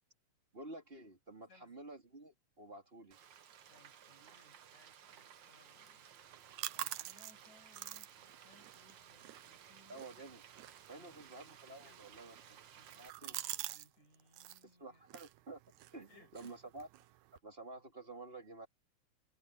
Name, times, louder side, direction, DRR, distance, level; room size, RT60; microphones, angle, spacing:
voice 1, 0.5-3.2 9.9-10.4 10.9-12.4 13.0-13.4 14.8-15.6 15.9-16.9 17.3-18.7, right 2 dB, 20° right, 2.6 m, -51 dB
voice 2, 1.5-1.8 3.7-6.1 6.5-10.1 10.9-15.0 16.1-16.6, left 1 dB, 70° left, 8.2 m, -67 dB
Frying (food), 3.1-13.1, right 9 dB, 55° right, 1.3 m, -58 dB
sound 1, 6.2-13.9 14.1-14.6 15.1-17.4, right 15 dB, 80° right, 2.0 m, -48 dB
omnidirectional pair, 3.4 m